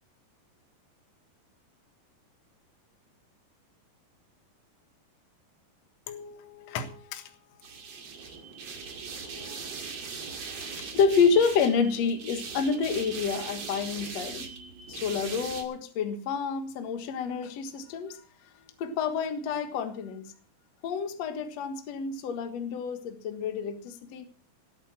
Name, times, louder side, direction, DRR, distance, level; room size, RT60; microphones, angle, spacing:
voice 1, 6.1-7.3 9.3-9.6 10.5-14.5 14.9-18.2 18.8-20.3 20.8-24.2, left 5 dB, 55° left, 8 dB, 2.4 m, -29 dB
sound 1, 7.6-15.6, right 5 dB, 50° right, 3.1 m, -40 dB
19.5 x 8.8 x 6.0 m, 0.39 s
omnidirectional pair, 4.1 m